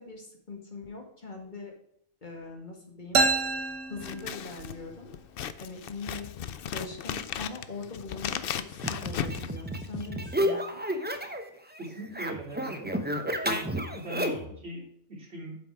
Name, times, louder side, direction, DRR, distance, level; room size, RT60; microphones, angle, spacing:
voice 1, 0.0-1.7 2.2-3.2 3.9-5.1 5.6-10.8, left 3 dB, 40° left, 2 dB, 2.1 m, -42 dB
sound 1, 3.1-4.8, right 3 dB, 90° right, 1.4 m, -28 dB
Scissors, 3.9-10.2, left 9 dB, 60° left, 0.7 m, -37 dB
sound 2, 8.8-11.5 11.7-14.5, equal, 10° right, 0.7 m, -31 dB
voice 2, 11.8-12.9 13.4-15.6, right 1 dB, 55° right, -4 dB, 3.6 m, -40 dB
8.2 x 5.9 x 4.7 m, 0.74 s
omnidirectional pair, 1.2 m